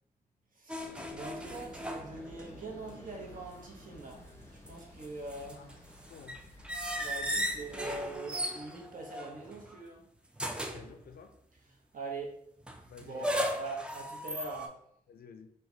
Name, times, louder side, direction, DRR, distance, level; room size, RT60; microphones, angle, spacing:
sound 1, 0.7-2.6 2.9-3.0 4.4-9.8 10.4-10.9 12.7-14.7, equal, 5° right, 0.3 m, -37 dB
sound 2, 0.8-8.2, left 1 dB, 20° left, 0.8 m, -52 dB
voice 1, 1.1-4.2 4.7-5.6 7.0-10.0 11.9-12.3 13.0-14.7, right 2 dB, 65° right, 0 dB, 0.9 m, -42 dB
voice 2, 10.7-11.3 12.9-13.4 15.1-15.5, left 6 dB, 75° left, 7 dB, 0.4 m, -52 dB
3.2 x 2.3 x 3.7 m, 0.70 s
wide cardioid pair, 155°, 16 cm